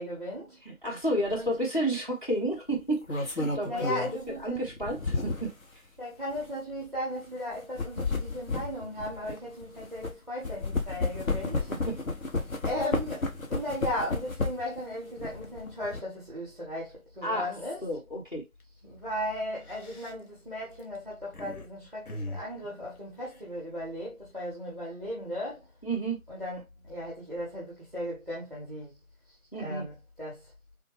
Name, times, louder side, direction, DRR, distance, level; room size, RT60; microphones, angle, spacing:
voice 1, 0.0-0.6 1.3-1.5 3.6-4.7 6.0-11.7 12.6-17.8 18.8-25.7 26.3-29.0 29.6-30.5, left 1 dB, ahead, 0.8 m, -36 dB
voice 2, 0.7-5.5 11.7-12.0 17.2-17.5 17.8-18.5 25.8-26.2 29.5-29.9, right 1 dB, 35° left, 0.9 m, -31 dB
sound 1, 1.3-1.5 2.7-5.6 6.3-6.5 7.5-10.1 10.4-14.8 15.2-16.0, left 3 dB, 70° left, 0.9 m, -32 dB
sound 2, 17.8-18.0 18.4-18.6 19.4-21.7 22.0-23.9, left 1 dB, 90° left, 1.1 m, -43 dB
3.4 x 2.2 x 3.3 m
figure-of-eight pair, 170°, 43 cm